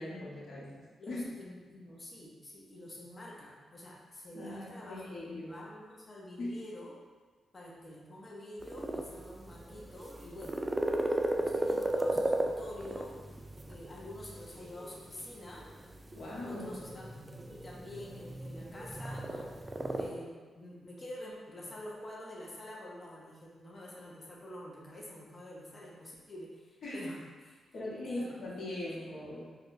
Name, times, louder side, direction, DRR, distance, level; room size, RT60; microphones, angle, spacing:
voice 1, 0.0-0.8 1.1-1.2 4.3-5.6 6.4-6.5 16.1-16.7 26.8-27.0 27.7-29.5, left 1 dB, 70° left, -7 dB, 1.1 m, -40 dB
voice 2, 1.0-6.9 7.5-10.6 11.3-13.2 13.6-15.6 16.4-17.2 17.5-27.2 27.4-28.3 29.0-29.1, left 1 dB, 40° left, -4 dB, 0.8 m, -47 dB
sound 1, 8.6-20.1, right 1 dB, 20° right, 0.3 m, -36 dB
4.1 x 2.3 x 2.6 m, 1.4 s
supercardioid pair, 50°, 0 cm